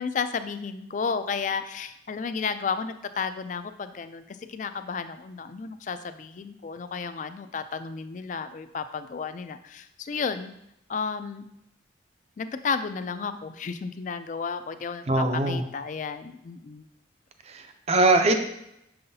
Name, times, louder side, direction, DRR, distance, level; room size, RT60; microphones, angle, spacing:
voice 1, 0.0-10.5 10.9-11.5 12.4-16.9, left 5 dB, 40° left, 11 dB, 0.3 m, -32 dB
voice 2, 15.1-15.6 17.5-18.3, right 2 dB, 35° right, 6 dB, 0.5 m, -22 dB
6.6 x 5.5 x 2.7 m, 0.81 s
head